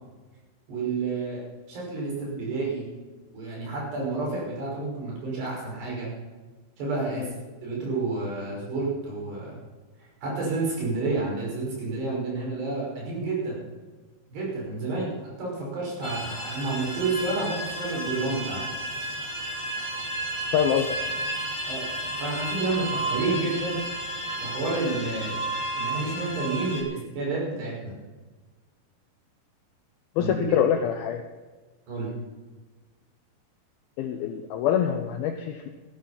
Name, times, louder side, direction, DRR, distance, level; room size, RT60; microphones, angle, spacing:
voice 1, 0.7-1.4 1.7-2.8 3.3-6.1 6.8-7.3 7.6-9.6 10.2-13.6 14.3-15.1 15.4-18.6 21.7-23.8 24.4-25.4 25.8-27.9 30.2-30.3 31.9-32.1, right 3 dB, 65° right, -4 dB, 7.7 m, -30 dB
sound 1, 16.0-26.8, right 1 dB, 10° left, 1.6 m, -32 dB
voice 2, 20.5-21.1 30.2-31.2 34.0-35.7, left 9 dB, 80° left, 6 dB, 2.2 m, -25 dB
15.5 x 11.5 x 5.7 m, 1.3 s
omnidirectional pair, 5.2 m